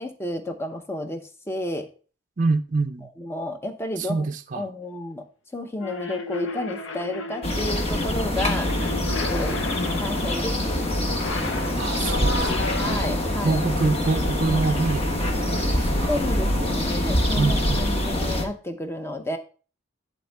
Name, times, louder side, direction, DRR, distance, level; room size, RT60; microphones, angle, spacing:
voice 1, 0.0-1.9 3.2-4.3 4.5-5.2 5.5-8.7 9.2-9.6 10.0-10.8 12.8-13.6 16.1-19.4, left 1 dB, 10° left, 0.8 m, -31 dB
voice 2, 2.4-3.1 4.0-4.7 11.8-13.0 13.4-16.7 17.4-17.9, right 3 dB, 40° right, 0.5 m, -27 dB
sound 1, 5.8-7.7 8.6-10.4 11.0-13.3, left 3 dB, 70° left, 0.9 m, -33 dB
sound 2, 7.4-18.5, left 1 dB, 30° left, 1.1 m, -25 dB
10.5 x 4.4 x 3.4 m
head